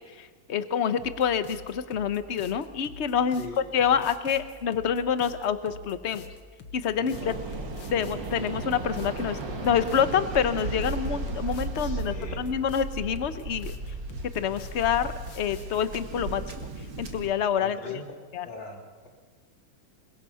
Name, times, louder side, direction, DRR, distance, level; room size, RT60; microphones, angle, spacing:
voice 1, 0.1-3.5 3.7-6.3 6.7-7.4 7.9-13.7 14.3-16.7 17.0-18.0 18.3-18.5, left 8 dB, 45° left, 12 dB, 1.0 m, -27 dB
sound 1, 1.0-15.9, left 5 dB, 90° left, 2.1 m, -46 dB
voice 2, 6.9-7.4 11.8-12.5 17.6-18.0 18.4-19.1, left 2 dB, 70° left, 1 dB, 4.1 m, -42 dB
Waves surf, 7.1-17.3, right 3 dB, 65° right, 2.6 m, -35 dB
27.5 x 21.5 x 5.7 m, 1.5 s
omnidirectional pair, 2.1 m